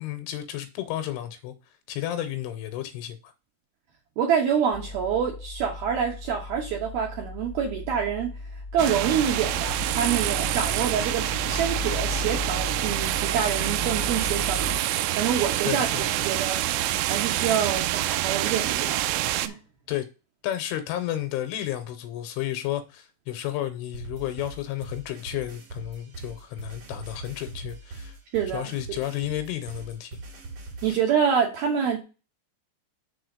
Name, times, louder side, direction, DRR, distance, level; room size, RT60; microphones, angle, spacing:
voice 1, 0.0-1.5 1.9-3.3 15.7-16.3 19.9-20.1 20.4-28.2 28.5-30.2, left 13 dB, 80° left, 3.0 m, -32 dB
voice 2, 4.2-8.3 8.7-14.9 15.2-19.1 19.4-19.6 28.3-29.0 30.8-32.0, right 7 dB, 70° right, 2.3 m, -27 dB
sound 1, 4.7-14.8, left 2 dB, 30° left, 0.7 m, -36 dB
sound 2, 8.8-19.5, right 14 dB, 90° right, 2.6 m, -27 dB
sound 3, 23.9-31.0, right 2 dB, 45° right, 2.1 m, -41 dB
6.9 x 4.2 x 6.6 m
omnidirectional pair, 5.9 m